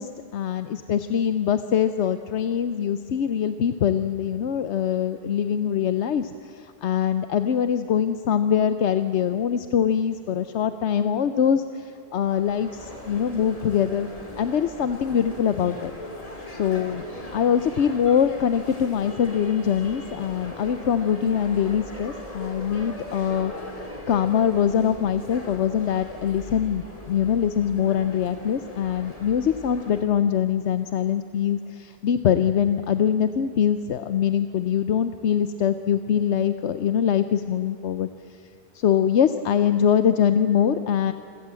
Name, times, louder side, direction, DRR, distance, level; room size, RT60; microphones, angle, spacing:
voice 1, 0.0-14.1 14.4-15.9 16.5-17.0 17.3-23.5 24.1-38.1 38.7-41.1, left 8 dB, 85° left, 10 dB, 1.0 m, -23 dB
sound 1, 12.2-30.0, left 1 dB, 35° left, 3.1 m, -39 dB
27.0 x 17.5 x 7.6 m, 2.8 s
omnidirectional pair, 1.1 m